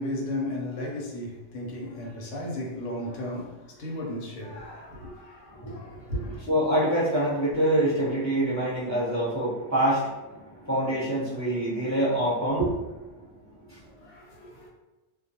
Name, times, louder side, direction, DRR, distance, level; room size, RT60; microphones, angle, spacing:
voice 1, 0.0-6.4 13.8-14.7, left 1 dB, 90° left, 1.0 m, -35 dB
voice 2, 6.5-10.3 10.6-13.2 13.7-13.8, right 1 dB, 20° right, 0.6 m, -25 dB
2.3 x 2.2 x 2.8 m
omnidirectional pair, 1.2 m